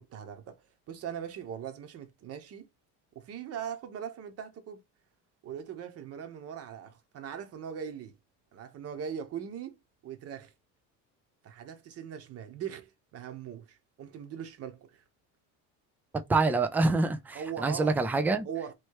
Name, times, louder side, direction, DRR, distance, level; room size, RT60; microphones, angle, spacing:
voice 1, 0.0-2.7 3.1-4.8 5.4-8.1 8.5-9.8 10.0-10.5 11.4-15.0 17.3-18.1 18.4-18.7, right 8 dB, 40° right, 1.0 m, -40 dB
voice 2, 16.3-18.5, right 3 dB, 5° right, 0.3 m, -26 dB
3.1 x 3.0 x 4.6 m
cardioid pair, 150°, 37 cm